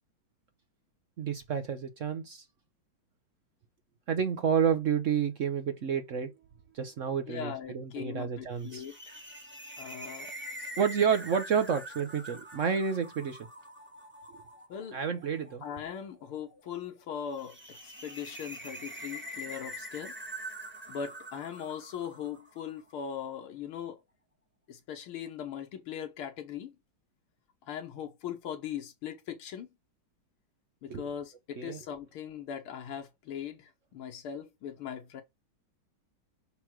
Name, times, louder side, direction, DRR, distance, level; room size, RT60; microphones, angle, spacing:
voice 1, 1.2-2.4 4.1-6.3 6.7-8.8 10.8-13.5 14.9-15.6 30.9-31.0 31.6-31.8, right 7 dB, 65° right, 0.7 m, -30 dB
voice 2, 7.3-9.2 9.8-10.3 10.6-10.7 14.7-15.0 15.6-20.2 20.9-24.0 24.7-26.8 27.7-29.7 30.8-35.2, left 8 dB, 90° left, 2.0 m, -40 dB
sound 1, 8.6-22.9, right 1 dB, 5° right, 1.0 m, -45 dB
6.9 x 3.1 x 6.0 m
omnidirectional pair, 2.3 m